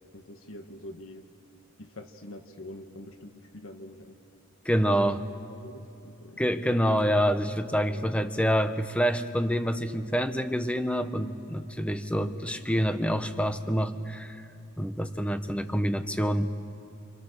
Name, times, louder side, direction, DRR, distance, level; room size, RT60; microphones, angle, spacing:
voice 1, 0.1-1.3 1.8-4.2 4.8-5.1 5.5-6.7 7.7-8.4 12.1-12.7, left 1 dB, 75° left, 6 dB, 1.5 m, -45 dB
voice 2, 4.6-5.2 6.4-14.4 14.8-16.5, equal, 5° left, 9 dB, 1.0 m, -27 dB
28.0 x 27.5 x 6.6 m, 2.9 s
head